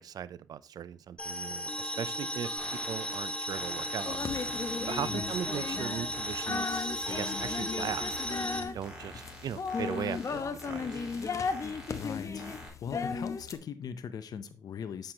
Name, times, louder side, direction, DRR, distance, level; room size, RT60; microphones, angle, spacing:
voice 1, 0.0-2.5 2.9-4.2 4.9-11.0, right 9 dB, 65° right, 17 dB, 0.5 m, -38 dB
sound 1, 1.2-8.6, equal, 15° left, 1.0 m, -35 dB
sound 2, 2.6-12.7, equal, 10° right, 4.1 m, -49 dB
sound 3, 4.1-13.6, left 5 dB, 50° left, 0.9 m, -36 dB
voice 2, 11.9-12.5 12.8-15.1, left 7 dB, 65° left, 12 dB, 0.6 m, -40 dB
7.6 x 6.6 x 2.8 m, 0.35 s
cardioid pair, 65°, 7 cm